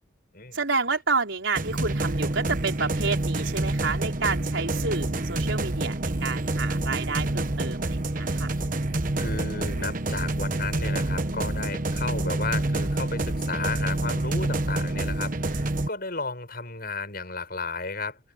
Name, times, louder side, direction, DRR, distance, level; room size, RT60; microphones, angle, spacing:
voice 1, 0.5-8.5, right 4 dB, 70° right, 4.9 m, -29 dB
sound 1, 1.6-15.9, right 2 dB, 45° right, 1.2 m, -27 dB
voice 2, 9.2-18.2, left 3 dB, 50° left, 7.8 m, -33 dB
head